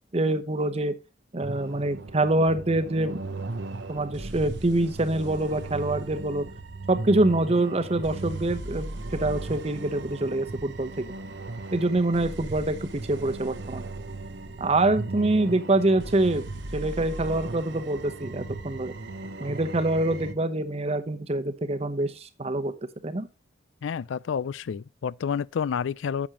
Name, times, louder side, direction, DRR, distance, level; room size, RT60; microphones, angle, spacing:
voice 1, 0.1-1.0 1.3-3.2 3.9-6.5 6.9-11.1 11.7-13.9 14.6-16.4 16.7-18.9 19.4-22.7 23.0-23.3, right 2 dB, 35° right, 0.9 m, -25 dB
sound 1, 1.4-20.3, right 2 dB, 65° right, 0.9 m, -37 dB
voice 2, 23.8-26.3, left 7 dB, 85° left, 0.4 m, -29 dB
10.0 x 7.2 x 2.9 m
head